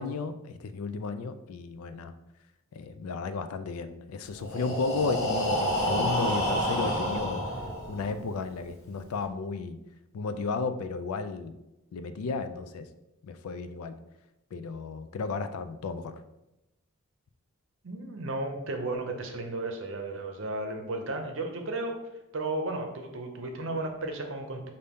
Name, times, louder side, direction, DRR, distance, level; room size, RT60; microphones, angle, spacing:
voice 1, 0.0-2.1 2.7-7.4 7.9-9.8 10.1-11.5 11.9-12.9 13.2-13.9 14.5-16.2, left 4 dB, 85° left, 11 dB, 0.4 m, -33 dB
Breathing, 4.4-8.2, equal, 65° left, 0.9 m, -29 dB
voice 2, 17.8-22.0 22.3-24.7, right 2 dB, 60° right, 4 dB, 0.7 m, -34 dB
5.4 x 2.7 x 3.5 m, 0.94 s
head